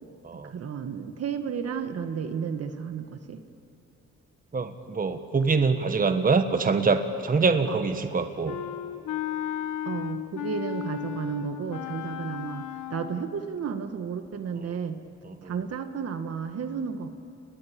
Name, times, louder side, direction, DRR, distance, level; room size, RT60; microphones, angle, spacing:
voice 1, 0.5-3.4 7.6-7.8 9.9-15.0 15.4-17.1, right 6 dB, 55° right, 8 dB, 1.6 m, -33 dB
voice 2, 4.5-8.6 15.2-15.5, right 4 dB, 30° right, 8 dB, 1.5 m, -24 dB
Wind instrument woodwind instrument, 8.5-13.3, left 11 dB, 85° left, 1.7 m, -34 dB
29.5 x 20.5 x 8.7 m, 2.9 s
cardioid pair, 90°, 30 cm